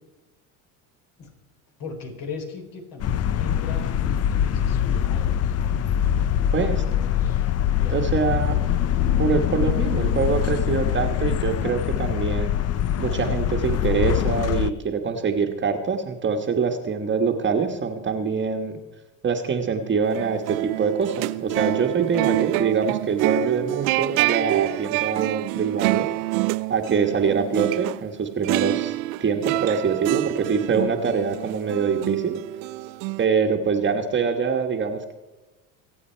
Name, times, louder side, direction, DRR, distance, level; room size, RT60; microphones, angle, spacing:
voice 1, 1.8-5.6 6.5-8.5, left 4 dB, 55° left, 3 dB, 4.0 m, -39 dB
sound 1, 3.0-14.7, left 10 dB, 35° left, 0.7 m, -23 dB
voice 2, 6.5-6.8 7.9-8.5 9.2-12.5 13.0-18.8 19.2-26.1 26.7-32.3 33.2-35.1, right 5 dB, 25° right, 5 dB, 1.5 m, -24 dB
sound 2, 20.0-28.0 28.4-33.3, right 19 dB, 80° right, 0.6 m, -27 dB
25.0 x 8.6 x 4.5 m, 1.1 s
supercardioid pair, 105°, 41 cm